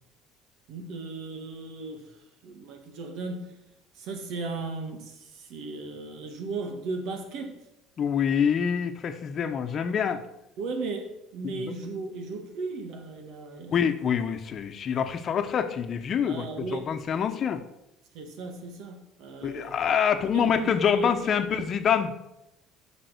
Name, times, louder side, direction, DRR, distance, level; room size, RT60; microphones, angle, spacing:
voice 1, 0.7-2.1 2.4-3.5 3.9-7.6 10.6-13.7 16.2-16.9 18.1-19.8 20.3-21.7, right 3 dB, 70° right, 5 dB, 1.7 m, -36 dB
voice 2, 8.0-10.2 11.4-11.7 13.7-17.6 19.4-22.1, left 7 dB, 50° left, 8 dB, 1.0 m, -26 dB
7.9 x 6.1 x 6.3 m, 0.88 s
supercardioid pair, 85°, 0 cm